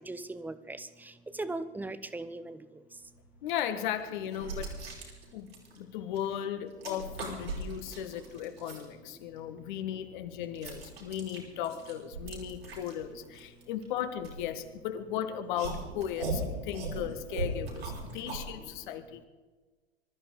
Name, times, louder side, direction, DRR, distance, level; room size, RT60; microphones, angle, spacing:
voice 1, 0.1-0.9 1.3-2.6, right 2 dB, 5° right, 13 dB, 0.7 m, -38 dB
sound 1, 3.2-3.4 4.0-6.3 6.6-8.9 9.4-15.0 15.5-18.5, right 3 dB, 70° right, 5.7 m, -39 dB
voice 2, 3.4-4.8 5.3-5.5 5.7-19.3, left 10 dB, 50° left, 9 dB, 1.7 m, -36 dB
25.0 x 13.5 x 4.0 m, 1.3 s
figure-of-eight pair, 90°, 31 cm